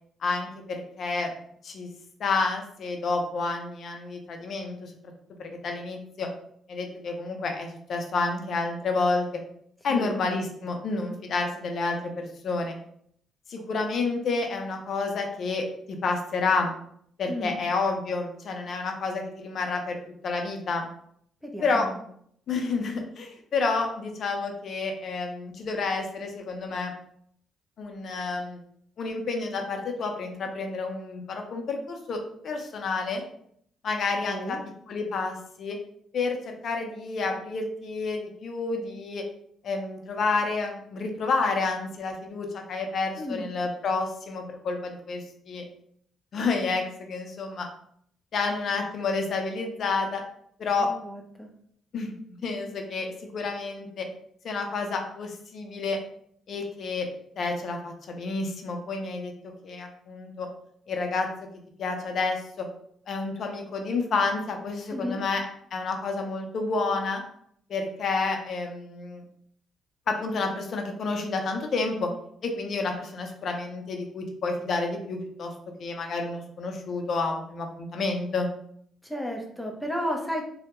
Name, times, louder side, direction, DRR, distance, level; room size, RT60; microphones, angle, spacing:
voice 1, 0.2-1.3 1.6-1.9 2.2-4.9 5.4-6.3 6.7-9.4 9.8-12.8 13.5-16.7 17.2-20.0 20.2-20.9 21.6-21.9 22.5-26.9 27.8-28.6 29.0-33.2 33.8-34.6 34.9-35.8 36.1-39.3 39.6-45.6 46.3-47.7 48.3-50.2 50.6-50.9 51.9-52.1 52.4-54.1 54.4-56.0 56.5-57.1 57.4-60.5 60.9-61.3 61.8-62.7 63.1-65.5 65.7-67.2 67.7-69.2 70.1-72.1 72.4-75.5 75.8-78.5, left 3 dB, 60° left, 3 dB, 0.4 m, -29 dB
voice 2, 9.9-10.2 17.3-17.6 21.4-22.0 34.2-34.6 43.2-43.5 50.8-51.5 64.9-65.2 79.0-80.4, equal, ahead, 1 dB, 0.5 m, -33 dB
2.1 x 2.0 x 2.9 m, 0.68 s
cardioid pair, 90°, 0 cm